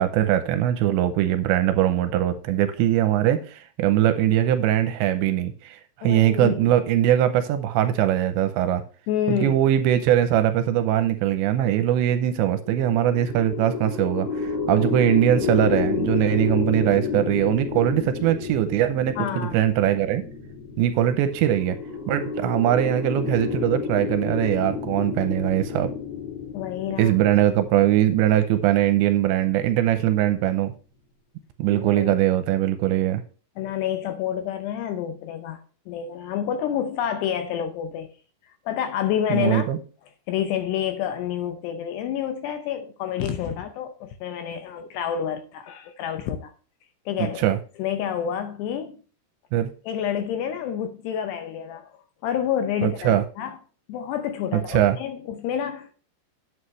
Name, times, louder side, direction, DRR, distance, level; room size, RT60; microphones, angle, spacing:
voice 1, 0.0-8.8 9.3-20.2 20.8-21.8 22.1-25.9 27.0-30.7 31.6-33.2 39.3-39.8 47.4-47.6 49.5-49.7 52.8-53.2 54.5-55.0, right 12 dB, 80° right, 2.7 m, -21 dB
voice 2, 6.0-6.6 9.1-9.6 19.2-19.6 26.5-27.1 31.7-32.1 33.6-35.6 35.9-38.1 38.7-39.7 40.3-46.5 47.1-47.4 47.8-49.0 49.9-51.9 52.2-53.6 53.9-55.9, left 9 dB, 80° left, 2.5 m, -28 dB
sound 1, 12.5-30.0, left 6 dB, 60° left, 3.4 m, -31 dB
9.9 x 8.1 x 3.1 m
omnidirectional pair, 5.5 m